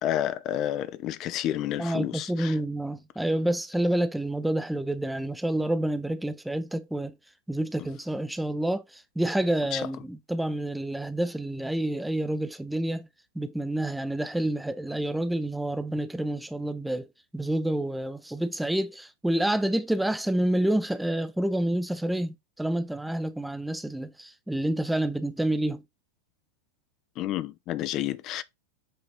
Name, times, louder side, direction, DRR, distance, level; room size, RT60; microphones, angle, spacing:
voice 1, 0.0-2.6 7.8-7.9 9.7-9.9 27.2-28.4, left 12 dB, 35° left, 0.5 m, -30 dB
voice 2, 1.8-7.2 7.5-13.1 13.3-17.1 17.3-25.8, right 1 dB, 5° right, 0.6 m, -28 dB
7.8 x 4.1 x 4.1 m
figure-of-eight pair, 90°, 0 cm